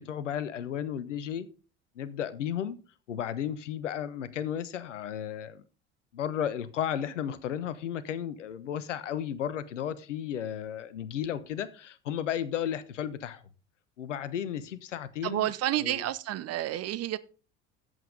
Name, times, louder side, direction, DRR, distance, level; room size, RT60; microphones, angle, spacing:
voice 1, 0.0-1.5 1.9-2.8 3.1-5.6 6.1-13.4 14.0-15.5 15.8-16.1, left 9 dB, 75° left, 1.1 m, -34 dB
voice 2, 15.2-17.2, right 13 dB, 40° right, 0.9 m, -30 dB
14.0 x 8.1 x 3.8 m
figure-of-eight pair, 65°, 36 cm